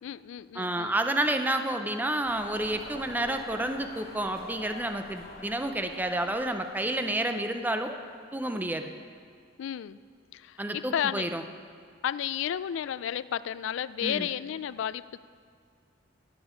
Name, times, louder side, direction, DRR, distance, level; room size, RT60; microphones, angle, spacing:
voice 1, 0.0-0.9 9.6-10.0 10.3-11.3 12.0-15.2, left 9 dB, 65° left, 16 dB, 0.3 m, -32 dB
voice 2, 0.5-8.0 8.3-8.9 10.6-11.4 14.0-14.3, right 1 dB, 10° right, 7 dB, 0.5 m, -30 dB
sound 1, 2.2-8.4, left 2 dB, 50° left, 1.7 m, -47 dB
17.0 x 7.0 x 5.0 m, 2.1 s
head